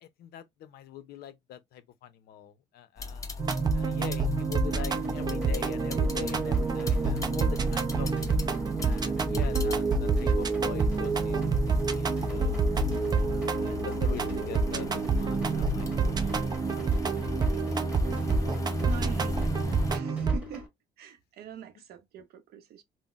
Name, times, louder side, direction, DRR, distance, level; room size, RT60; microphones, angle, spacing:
voice 1, 0.0-3.3 3.7-8.4 8.8-12.6 13.5-17.2, left 11 dB, 70° left, 0.5 m, -44 dB
sound 1, 3.0-20.0, left 2 dB, 20° left, 0.6 m, -37 dB
sound 2, 3.4-20.4, right 4 dB, 25° right, 0.4 m, -28 dB
sound 3, 4.7-20.7, left 3 dB, 10° right, 1.4 m, -43 dB
voice 2, 18.8-19.5 19.9-20.7 21.0-22.8, right 7 dB, 70° right, 0.7 m, -43 dB
3.7 x 2.0 x 2.3 m
cardioid pair, 110°, 17 cm